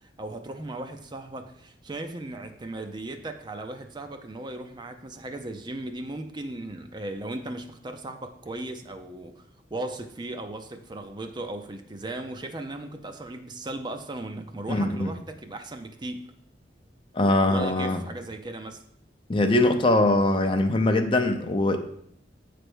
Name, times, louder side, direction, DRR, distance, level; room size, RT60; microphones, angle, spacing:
voice 1, 0.0-9.4 9.7-16.3 17.5-18.8, right 2 dB, 25° right, 6 dB, 0.5 m, -37 dB
voice 2, 14.7-15.1 17.1-18.0 19.3-21.8, left 2 dB, 30° left, 6 dB, 0.6 m, -22 dB
8.6 x 3.4 x 6.1 m, 0.69 s
head